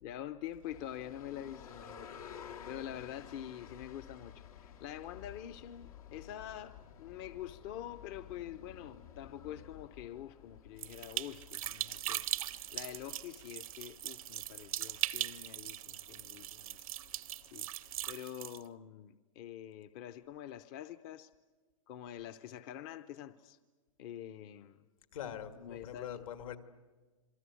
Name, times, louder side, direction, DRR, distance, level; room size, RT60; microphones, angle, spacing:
voice 1, 0.0-2.1 2.4-16.8 17.4-21.3 21.9-23.6 24.0-24.8 25.6-26.3, left 11 dB, 40° left, 0.7 m, -46 dB
sound 1, 0.6-18.1, left 8 dB, 85° left, 2.0 m, -54 dB
sound 2, 10.8-18.6, right 12 dB, 80° right, 0.8 m, -40 dB
voice 2, 25.1-26.6, left 9 dB, 70° left, 2.1 m, -43 dB
27.0 x 23.0 x 8.4 m
hypercardioid pair, 140°, 18 cm